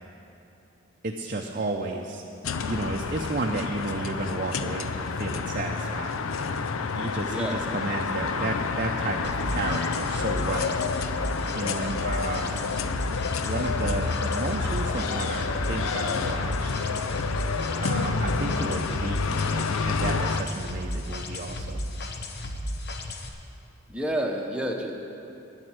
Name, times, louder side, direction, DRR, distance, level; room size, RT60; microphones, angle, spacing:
voice 1, 1.0-2.2 2.6-6.2 7.0-10.7 11.5-12.5 13.4-16.7 17.8-21.8, right 2 dB, 40° right, 0 dB, 0.6 m, -32 dB
sound 1, 2.4-20.4, left 5 dB, 75° left, 0.5 m, -29 dB
voice 2, 7.3-7.6 23.9-24.9, equal, 5° right, 0 dB, 1.0 m, -29 dB
sound 2, 9.2-23.3, left 1 dB, 50° left, 0.9 m, -34 dB
9.9 x 7.7 x 8.9 m, 2.8 s
head